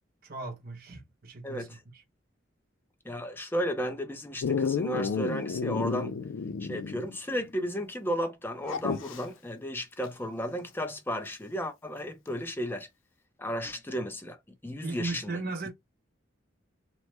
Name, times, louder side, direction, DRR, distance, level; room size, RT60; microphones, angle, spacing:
voice 1, 0.2-1.8 14.8-15.7, right 3 dB, 50° right, 0.8 m, -37 dB
voice 2, 1.4-1.8 3.0-6.1 6.6-12.9 13.4-14.4 14.6-15.3, equal, 10° left, 0.5 m, -34 dB
Dog, 4.4-7.2 7.5-7.6 8.7-9.3 11.3-11.4, left 5 dB, 85° left, 0.4 m, -31 dB
3.0 x 2.1 x 3.1 m
head